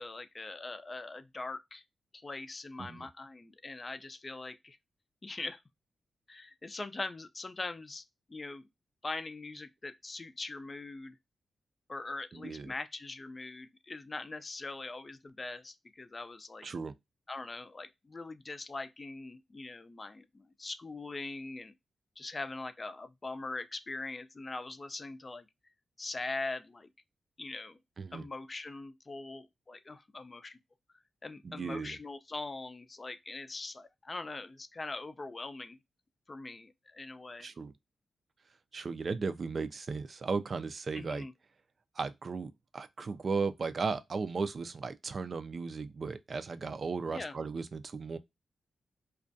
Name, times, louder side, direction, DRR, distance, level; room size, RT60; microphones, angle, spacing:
voice 1, 0.0-1.8 2.1-4.8 5.2-5.6 6.3-8.0 8.3-8.6 9.0-11.2 11.9-16.7 17.3-21.7 22.2-25.5 26.0-26.9 27.4-27.8 28.1-30.6 31.2-35.8 36.3-37.5 40.9-41.3 47.1-47.3, left 3 dB, 35° left, 0.4 m, -42 dB
voice 2, 12.3-12.7 16.6-16.9 28.0-28.2 31.4-32.0 37.4-37.7 38.7-41.2 42.0-48.2, right 4 dB, 50° right, 0.3 m, -36 dB
2.4 x 2.2 x 2.5 m
cardioid pair, 70°, 0 cm